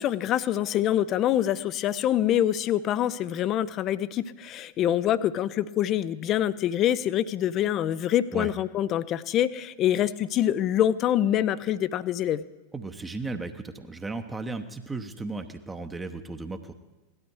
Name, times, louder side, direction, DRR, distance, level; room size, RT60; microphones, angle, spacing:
voice 1, 0.0-12.4, left 11 dB, 35° left, 17 dB, 0.5 m, -25 dB
voice 2, 12.7-16.7, right 3 dB, 10° right, 7 dB, 0.9 m, -35 dB
17.5 x 12.0 x 4.7 m, 1.1 s
figure-of-eight pair, 90°, 0 cm